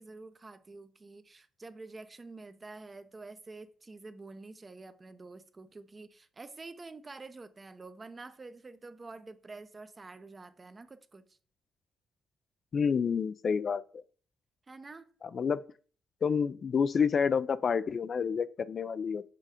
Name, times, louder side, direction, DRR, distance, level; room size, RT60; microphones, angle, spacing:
voice 1, 0.0-11.4 14.7-15.1, right 3 dB, 25° right, 0.6 m, -48 dB
voice 2, 12.7-14.0 15.3-15.6 16.2-19.2, left 6 dB, 50° left, 0.3 m, -29 dB
7.5 x 2.7 x 4.9 m
cardioid pair, 90°, 0 cm